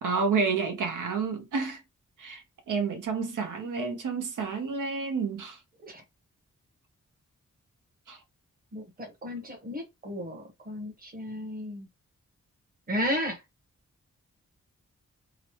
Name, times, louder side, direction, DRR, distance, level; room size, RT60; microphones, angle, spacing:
voice 1, 0.0-1.8 2.2-5.6 8.1-8.2, right 5 dB, 90° right, 0.8 m, -30 dB
voice 2, 8.7-11.9 12.9-13.4, equal, 30° right, 0.9 m, -33 dB
3.0 x 2.0 x 2.9 m
wide cardioid pair, 120°, 30 cm